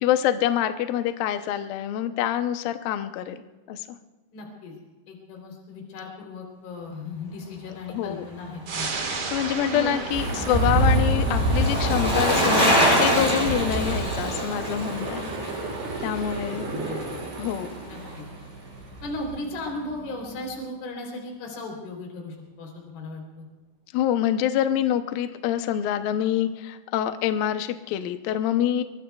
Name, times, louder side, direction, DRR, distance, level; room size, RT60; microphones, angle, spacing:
voice 1, 0.0-3.9 7.9-8.3 9.1-15.7 16.0-16.7 17.4-17.7 23.9-28.8, left 11 dB, 80° left, 8 dB, 2.0 m, -26 dB
voice 2, 4.3-4.8 5.1-9.1 9.7-9.9 10.7-10.9 16.5-17.2 17.8-18.3 19.0-23.5, left 2 dB, 60° left, 0 dB, 5.2 m, -36 dB
sound 1, 8.7-19.6 20.0-20.1, right 4 dB, 65° right, 1.2 m, -38 dB
Bicycle, 8.8-17.2 17.5-17.6, equal, 5° left, 7.6 m, -26 dB
sound 2, 10.1-20.6, right 1 dB, 80° right, 6.7 m, -28 dB
26.0 x 23.5 x 2.4 m, 1.2 s
omnidirectional pair, 5.2 m